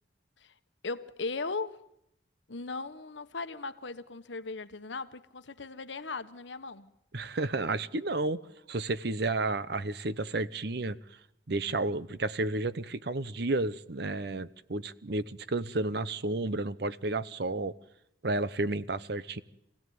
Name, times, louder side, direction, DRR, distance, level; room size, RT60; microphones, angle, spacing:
voice 1, 0.8-1.8 2.5-6.9, left 3 dB, 70° left, 1.2 m, -38 dB
voice 2, 7.1-8.4 8.7-11.0 11.5-17.7 18.2-19.4, right 2 dB, 55° right, 0.9 m, -31 dB
26.0 x 16.5 x 9.4 m
head